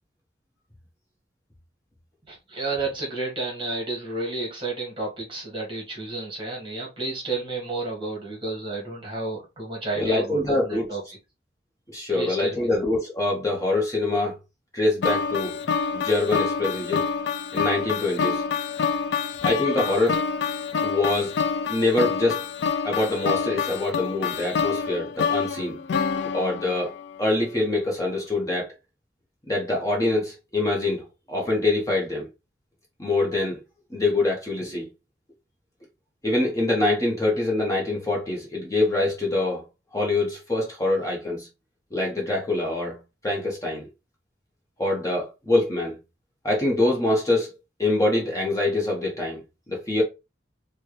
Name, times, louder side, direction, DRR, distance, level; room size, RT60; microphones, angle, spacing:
voice 1, 2.3-11.0 12.1-12.7, right 2 dB, 30° right, 1.5 m, -31 dB
voice 2, 9.9-10.8 11.9-14.3 14.7-15.5 15.9-17.0 17.5-18.4 19.4-20.2 20.8-21.3 21.7-22.4 22.8-25.8 26.3-26.9 27.2-28.7 29.5-32.3 33.0-33.6 33.9-34.9 36.2-39.6 39.9-41.5 41.9-43.0 43.2-43.9 44.8-46.0 46.4-47.5 47.8-49.4 49.7-50.0, left 2 dB, 20° left, 1.0 m, -24 dB
sound 1, 15.0-27.2, left 6 dB, 75° left, 0.4 m, -27 dB
4.2 x 2.2 x 3.2 m
head